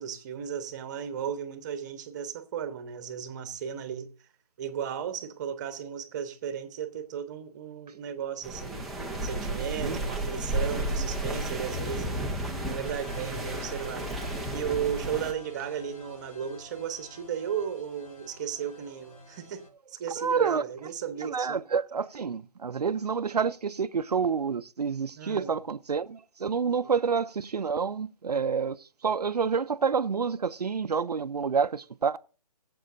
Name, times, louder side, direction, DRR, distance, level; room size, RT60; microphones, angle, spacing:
voice 1, 0.0-4.1 4.6-8.9 9.2-12.3 12.7-14.1 14.5-21.6 25.1-25.6 26.7-26.9, right 8 dB, 30° right, 1.1 m, -35 dB
sound 1, 8.4-15.3, right 1 dB, ahead, 0.5 m, -32 dB
sound 2, 12.8-19.7, left 2 dB, 70° left, 3.1 m, -49 dB
voice 2, 20.2-20.6 21.2-32.2, right 6 dB, 85° right, 0.5 m, -28 dB
20.5 x 7.7 x 2.6 m
figure-of-eight pair, 150°, 20 cm